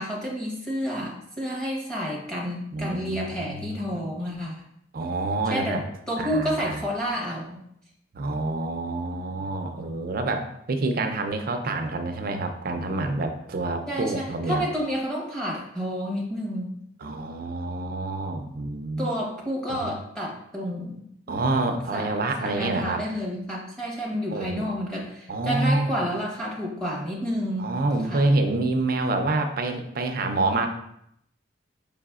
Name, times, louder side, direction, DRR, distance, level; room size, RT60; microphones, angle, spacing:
voice 1, 0.0-4.6 5.5-5.8 6.1-7.6 13.9-16.7 19.0-21.4 21.9-22.1 22.4-27.7 28.1-28.3, equal, 5° left, -5 dB, 1.0 m, -30 dB
voice 2, 2.7-4.0 4.9-5.8 6.2-6.8 8.1-14.6 17.0-19.2 19.7-19.9 21.3-23.0 24.3-24.7 25.3-26.0 27.6-30.7, right 2 dB, 50° right, 6 dB, 0.5 m, -27 dB
4.8 x 3.4 x 2.3 m, 0.74 s
head